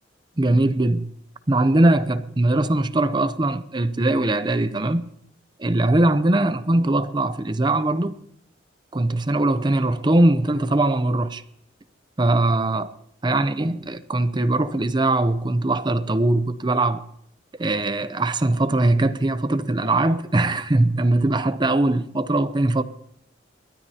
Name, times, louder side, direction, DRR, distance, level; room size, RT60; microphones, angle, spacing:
voice 1, 0.4-1.1 1.5-5.1 5.6-8.1 8.9-11.4 12.2-12.9 13.2-17.0 17.6-22.8, right 2 dB, 25° right, 0.6 m, -21 dB
28.0 x 13.0 x 2.8 m
head